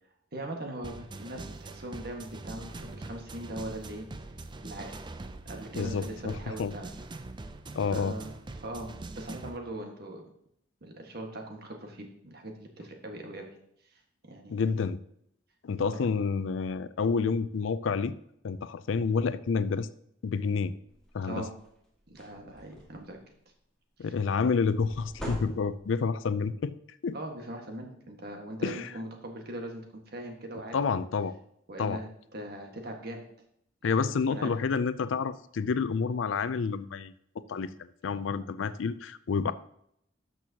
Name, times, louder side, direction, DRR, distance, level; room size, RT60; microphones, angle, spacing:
voice 1, 0.3-4.1 4.6-5.0 5.4-6.9 7.9-8.3 8.6-10.2 10.8-13.5 13.8-14.7 15.8-16.0 21.3-21.5 22.1-23.2 24.0-24.1 27.1-30.8 31.7-33.2 34.0-34.5, right 1 dB, 55° right, 2 dB, 1.5 m, -40 dB
sound 1, 0.8-9.6, right 2 dB, 25° right, 0.4 m, -43 dB
voice 2, 5.8-6.7 7.7-8.1 14.5-15.0 15.6-18.1 18.4-19.9 20.2-20.7 21.1-21.5 24.0-26.7 27.0-27.2 28.6-28.9 30.7-31.3 31.8-32.0 33.8-37.1 37.5-39.5, left 5 dB, 85° left, 14 dB, 0.4 m, -29 dB
sound 2, 20.9-21.2 21.6-21.8 22.0-23.1 24.8-26.1, equal, 5° left, 1.8 m, -41 dB
12.5 x 6.1 x 2.8 m, 0.72 s
head